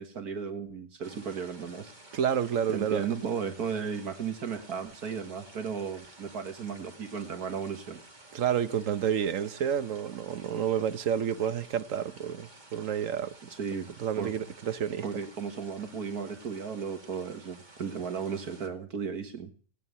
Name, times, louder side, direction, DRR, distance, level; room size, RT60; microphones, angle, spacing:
voice 1, 0.0-1.9 2.7-8.0 13.6-13.9 14.2-14.3 15.0-19.5, right 6 dB, 80° right, 2.1 m, -35 dB
sound 1, 1.0-18.7, right 2 dB, 30° right, 2.5 m, -53 dB
voice 2, 2.1-3.0 8.3-13.4 14.0-15.0, right 8 dB, 60° right, 1.3 m, -29 dB
18.5 x 9.4 x 8.1 m
omnidirectional pair, 1.6 m